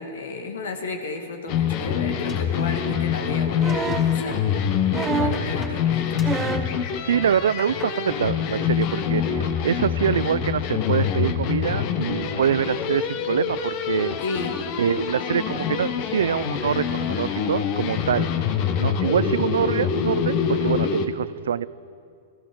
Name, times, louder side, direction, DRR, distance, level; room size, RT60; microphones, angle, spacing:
voice 1, 0.0-4.5 5.0-6.3 14.2-14.7, left 3 dB, 75° left, 5 dB, 1.9 m, -33 dB
sound 1, 1.5-21.1, left 7 dB, 50° left, 1.0 m, -25 dB
sound 2, 2.3-3.1 3.4-4.2 4.6-5.8 6.2-6.5 7.1-8.0 8.3-8.9 9.2-9.7, left 3 dB, 35° left, 3.7 m, -45 dB
sound 3, 3.6-4.1 4.9-5.5 6.2-6.7 8.0-8.1, right 5 dB, 20° right, 1.0 m, -27 dB
voice 2, 7.0-14.2 14.8-18.3 18.8-21.7, right 8 dB, 80° right, 19 dB, 0.3 m, -25 dB
18.5 x 15.0 x 3.9 m, 2.3 s
hypercardioid pair, 110°, 0 cm